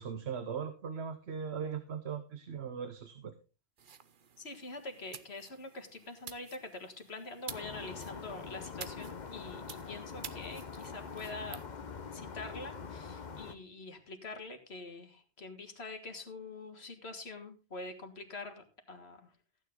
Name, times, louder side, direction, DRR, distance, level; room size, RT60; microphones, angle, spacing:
voice 1, 0.0-3.3, right 7 dB, 80° right, 10 dB, 1.2 m, -39 dB
sound 1, 3.8-11.7, right 7 dB, 55° right, 1.0 m, -51 dB
voice 2, 4.4-11.6 12.1-19.3, left 3 dB, 75° left, 5 dB, 2.0 m, -45 dB
sound 2, 7.5-13.6, left 5 dB, 45° left, 1.1 m, -44 dB
15.0 x 9.4 x 3.8 m, 0.32 s
omnidirectional pair, 1.1 m